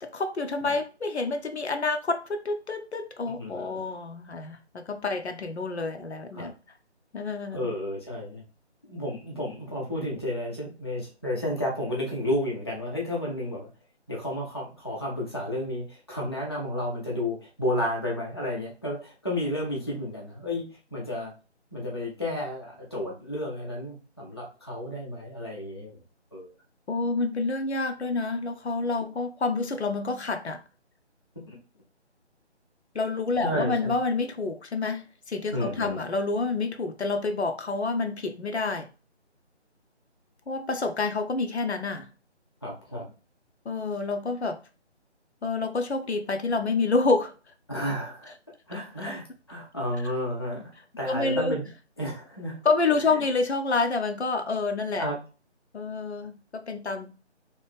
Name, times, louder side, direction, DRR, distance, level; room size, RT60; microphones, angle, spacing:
voice 1, 0.0-6.5 7.1-7.7 26.9-30.6 32.9-38.9 40.5-42.1 43.7-44.6 45.4-47.3 49.1-49.2 51.0-51.5 52.6-55.1 55.7-57.1, left 3 dB, 70° left, 0.7 m, -28 dB
voice 2, 3.4-3.8 6.3-6.5 7.5-8.4 8.8-13.7 14.1-21.3 21.7-26.0 26.3-26.5 31.5-31.6 33.4-33.9 35.5-36.0 42.6-43.1 47.7-48.3 48.7-50.7 51.0-51.7 52.0-52.6 53.0-53.2 55.0-55.2, left 1 dB, 25° left, 0.5 m, -32 dB
2.9 x 2.6 x 3.3 m
figure-of-eight pair, 155°, 34 cm